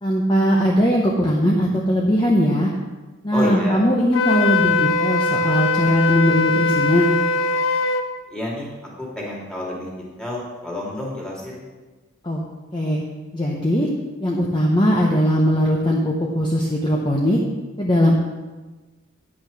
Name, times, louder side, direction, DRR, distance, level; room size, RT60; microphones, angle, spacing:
voice 1, 0.0-2.7 3.2-7.1 12.2-12.4 12.7-13.0 13.3-13.9 14.2-17.4 17.8-18.1, equal, 25° left, -2 dB, 0.9 m, -19 dB
voice 2, 3.3-3.8 8.3-8.7 9.0-9.9 10.2-11.6, left 1 dB, 5° left, -5 dB, 2.5 m, -29 dB
Wind instrument woodwind instrument, 4.1-8.1, left 3 dB, 75° left, 0.7 m, -21 dB
9.4 x 6.1 x 6.4 m, 1.2 s
head